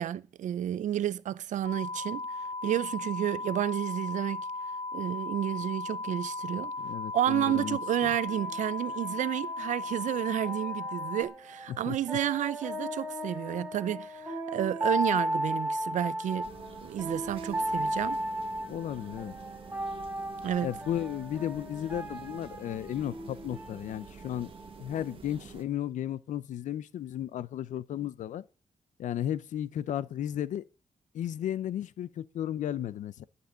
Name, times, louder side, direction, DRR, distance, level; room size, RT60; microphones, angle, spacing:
voice 1, 0.0-2.2 2.6-4.4 4.9-6.7 7.1-16.5 16.8-18.2 20.4-20.7, right 11 dB, 85° right, 0.6 m, -31 dB
sound 1, 1.6-11.2, left 3 dB, 35° left, 2.2 m, -36 dB
voice 2, 6.8-8.1 11.7-12.0 18.7-19.3 20.6-24.5 24.8-28.4 29.0-30.6 31.1-33.2, left 11 dB, 90° left, 0.6 m, -34 dB
sound 2, 7.7-25.2, right 1 dB, 10° right, 5.5 m, -36 dB
sound 3, 16.4-25.6, right 6 dB, 45° right, 1.6 m, -49 dB
11.5 x 7.0 x 9.3 m
wide cardioid pair, 145°, 12 cm